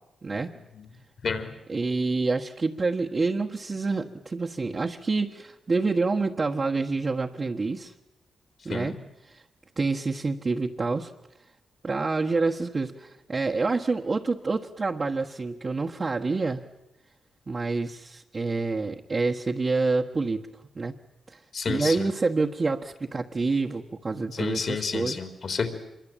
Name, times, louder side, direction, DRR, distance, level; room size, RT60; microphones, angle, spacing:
voice 1, 0.2-0.5 1.7-7.9 8.6-9.4 9.8-11.1 11.8-16.6 17.5-20.5 20.7-20.9 21.3-21.4 21.7-25.2, right 3 dB, 35° right, -1 dB, 1.4 m, -27 dB
voice 2, 1.2-1.5 8.7-9.0 21.5-22.1 24.4-25.7, left 5 dB, 55° left, 8 dB, 3.9 m, -30 dB
26.0 x 22.5 x 9.0 m, 0.92 s
cardioid pair, 105°, 0 cm